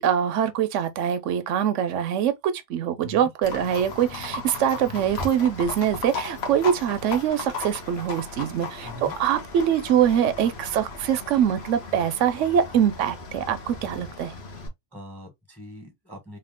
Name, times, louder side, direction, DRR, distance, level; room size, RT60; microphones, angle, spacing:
voice 1, 0.0-14.3, right 9 dB, 80° right, 1.0 m, -24 dB
Livestock farm animals working animals, 3.4-14.7, left 3 dB, 55° left, 1.2 m, -36 dB
voice 2, 8.8-9.1 14.9-16.4, left 1 dB, ahead, 1.2 m, -42 dB
3.2 x 2.7 x 3.6 m
omnidirectional pair, 1.3 m